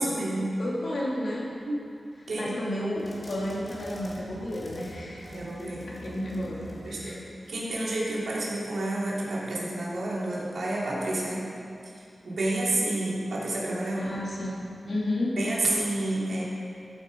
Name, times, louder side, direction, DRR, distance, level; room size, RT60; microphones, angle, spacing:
voice 1, 0.0-0.5 1.6-1.8 2.3-2.5 5.3-5.8 6.7-7.2 7.5-11.5 12.2-14.1 15.4-16.4, right 2 dB, 80° right, -6 dB, 3.0 m, -29 dB
voice 2, 0.6-1.5 2.3-5.3 5.6-7.2 14.0-15.4, left 1 dB, 65° left, -4 dB, 2.7 m, -32 dB
sound 1, 3.0-8.0, left 1 dB, 30° left, 2.0 m, -44 dB
14.0 x 8.4 x 5.3 m, 2.5 s
wide cardioid pair, 120°, 0 cm